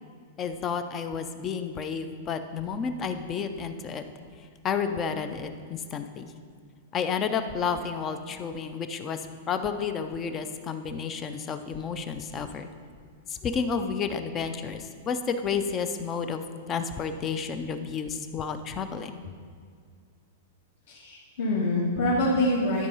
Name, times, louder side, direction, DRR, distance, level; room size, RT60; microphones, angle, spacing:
voice 1, 0.4-4.0 4.6-6.3 6.9-9.2 9.5-12.7 13.3-19.1, left 6 dB, 15° left, 9 dB, 0.4 m, -31 dB
voice 2, 20.9-22.9, left 1 dB, 65° left, -7 dB, 1.8 m, -25 dB
12.0 x 4.6 x 5.4 m, 2.1 s
supercardioid pair, 175°, 0 cm